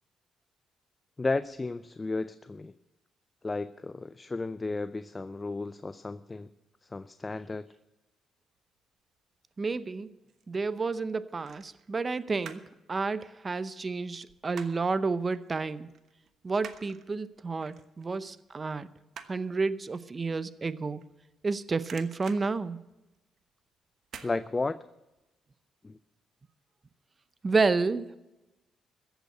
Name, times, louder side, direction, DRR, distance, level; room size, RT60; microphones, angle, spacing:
voice 1, 1.2-2.7 3.4-6.5 6.9-7.7 24.2-24.8 25.8-26.0, left 3 dB, 25° left, 13 dB, 0.4 m, -33 dB
voice 2, 9.6-10.1 10.5-12.6 12.9-15.9 16.4-18.9 19.3-21.0 21.4-22.8 27.4-28.2, right 4 dB, 30° right, 15 dB, 0.7 m, -30 dB
sound 1, 9.9-10.6 11.4-12.8 13.1-15.0 15.3-15.5 15.8-21.5 21.8-23.4 24.0-24.4 24.8-24.9, right 7 dB, 65° right, 1.1 m, -49 dB
14.5 x 8.1 x 7.9 m, 1.0 s
cardioid pair, 90°, 0 cm